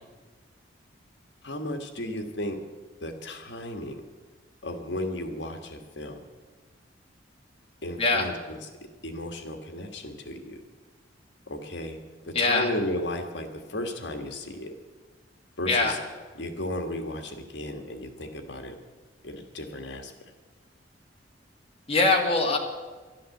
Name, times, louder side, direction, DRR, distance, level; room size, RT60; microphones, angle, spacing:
voice 1, 1.4-2.6 3.0-4.0 4.6-6.2 7.8-8.6 9.0-10.6 11.5-12.0 12.2-14.7 15.6-16.0 16.4-18.7 19.2-20.1, left 1 dB, 70° left, 6 dB, 1.6 m, -34 dB
voice 2, 8.0-8.3 12.3-12.7 15.7-16.0 21.9-22.6, left 3 dB, 30° left, 1 dB, 1.8 m, -23 dB
11.5 x 11.5 x 7.7 m, 1.3 s
head